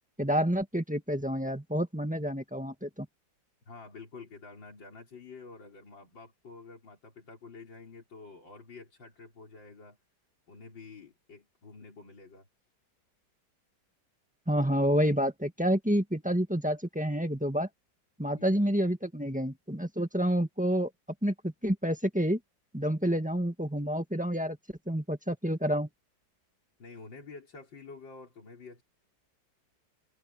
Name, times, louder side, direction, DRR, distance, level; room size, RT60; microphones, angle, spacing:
voice 1, 0.2-3.1 14.5-17.7 18.2-20.9 21.2-22.4 22.7-24.6 24.9-25.9, equal, 5° right, 1.5 m, -29 dB
voice 2, 3.7-10.0 10.5-12.5 18.3-18.6 26.8-28.8, left 4 dB, 85° left, 5.0 m, -49 dB
omnidirectional pair, 2.0 m